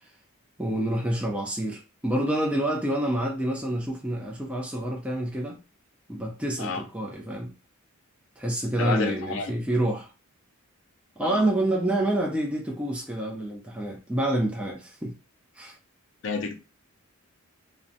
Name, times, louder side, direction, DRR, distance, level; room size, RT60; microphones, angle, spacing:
voice 1, 0.6-5.6 6.1-7.5 8.4-10.1 11.2-15.2 15.5-15.8, right 1 dB, 5° right, 0.3 m, -28 dB
voice 2, 8.8-9.5 11.2-11.4 16.2-16.6, left 4 dB, 60° left, 0.5 m, -29 dB
2.6 x 2.0 x 2.5 m
head